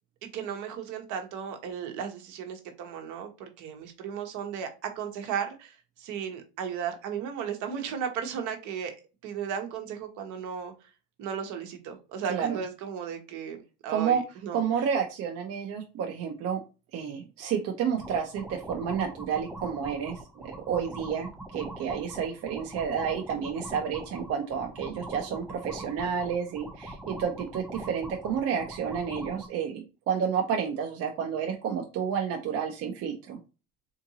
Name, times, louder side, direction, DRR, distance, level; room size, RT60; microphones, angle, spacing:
voice 1, 0.2-8.9 9.2-10.7 11.2-13.6 13.8-14.6, right 7 dB, 65° right, 5 dB, 1.0 m, -35 dB
voice 2, 13.9-14.2 14.5-16.6 16.9-33.4, right 7 dB, 45° right, 2 dB, 0.6 m, -30 dB
sound 1, 17.9-29.5, right 1 dB, 5° right, 0.3 m, -42 dB
3.7 x 2.5 x 2.7 m, 0.31 s
cardioid pair, 130°, 32 cm